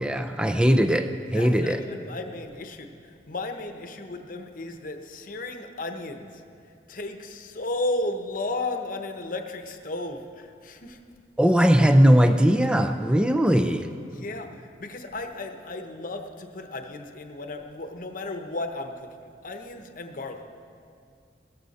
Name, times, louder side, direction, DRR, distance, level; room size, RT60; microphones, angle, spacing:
voice 1, 0.0-1.8 11.4-13.9, equal, 5° right, 7 dB, 0.4 m, -19 dB
voice 2, 1.3-6.4 6.9-11.0 14.1-20.4, left 2 dB, 45° left, 6 dB, 0.9 m, -34 dB
17.5 x 14.0 x 4.2 m, 2.4 s
head